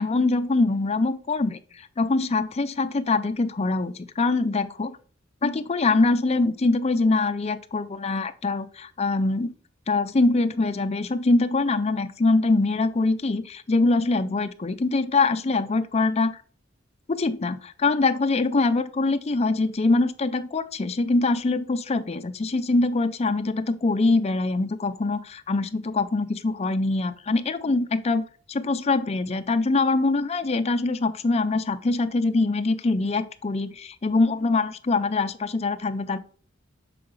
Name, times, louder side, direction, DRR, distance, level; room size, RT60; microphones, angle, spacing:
voice 1, 0.0-1.6 2.0-5.0 5.4-9.5 9.9-16.4 17.1-36.2, left 3 dB, 35° left, 10 dB, 0.5 m, -23 dB
6.7 x 4.8 x 3.8 m, 0.42 s
head